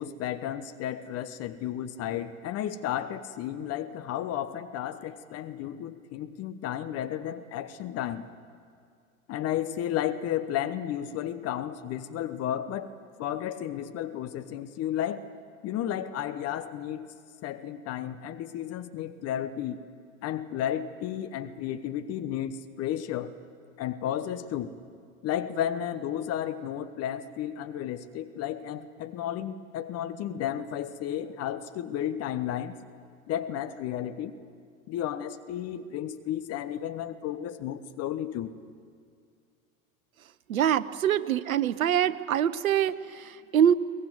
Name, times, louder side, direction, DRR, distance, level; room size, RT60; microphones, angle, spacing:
voice 1, 0.0-8.2 9.3-12.9 13.2-15.2 15.6-17.1 17.4-19.8 20.2-23.3 23.8-24.7 25.2-32.7 33.3-34.3 34.9-38.5, left 10 dB, 35° left, 11 dB, 1.1 m, -33 dB
voice 2, 40.5-43.7, right 9 dB, 75° right, 14 dB, 1.0 m, -24 dB
23.0 x 20.0 x 9.3 m, 2.3 s
figure-of-eight pair, 90°, 42 cm